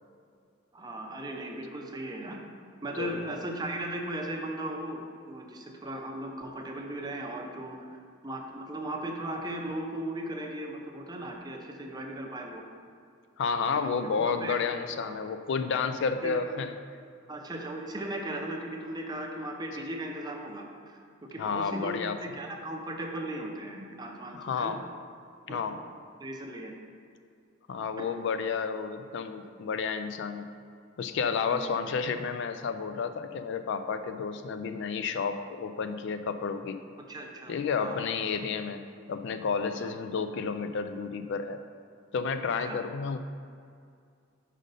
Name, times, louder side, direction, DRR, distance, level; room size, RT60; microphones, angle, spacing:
voice 1, 0.7-2.5 2.8-7.8 8.2-12.6 13.5-14.6 15.0-15.1 16.2-16.4 17.3-24.8 25.5-25.6 26.2-26.7 28.0-28.1 31.5-31.8 37.1-38.0 39.7-39.9 42.7-42.8, right 1 dB, 20° right, 1 dB, 0.6 m, -37 dB
voice 2, 3.0-3.4 13.4-16.7 21.4-22.2 24.3-24.8 25.5-25.8 27.7-30.5 31.0-36.8 37.5-38.8 39.1-41.6 42.1-43.2, left 5 dB, 60° left, 9 dB, 0.3 m, -31 dB
5.3 x 5.0 x 5.3 m, 2.3 s
head